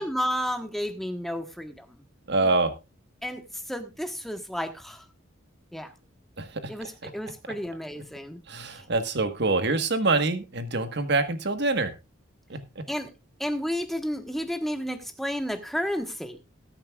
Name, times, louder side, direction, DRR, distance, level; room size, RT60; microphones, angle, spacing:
voice 1, 0.0-1.9 2.4-2.6 3.2-3.4 3.7-5.0 5.7-5.9 6.7-8.4 8.8-8.9 12.9-13.1 13.4-16.4, equal, ahead, 7 dB, 1.3 m, -31 dB
voice 2, 2.3-2.7 6.4-6.5 8.5-11.9 12.5-12.8, right 3 dB, 60° right, 9 dB, 1.4 m, -25 dB
20.0 x 8.8 x 2.4 m, 0.26 s
head